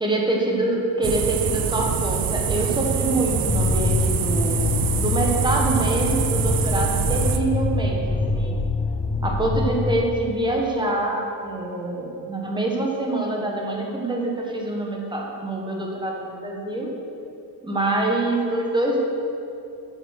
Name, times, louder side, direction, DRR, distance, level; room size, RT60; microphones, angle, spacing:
voice 1, 0.0-8.6 9.2-16.9 17.6-19.0, right 2 dB, 10° right, -1 dB, 1.3 m, -25 dB
sound 1, 1.0-7.4, right 7 dB, 55° right, 0.6 m, -25 dB
sound 2, 3.5-10.1, left 3 dB, 15° left, 0.3 m, -25 dB
8.1 x 7.6 x 5.8 m, 2.7 s
wide cardioid pair, 155°, 42 cm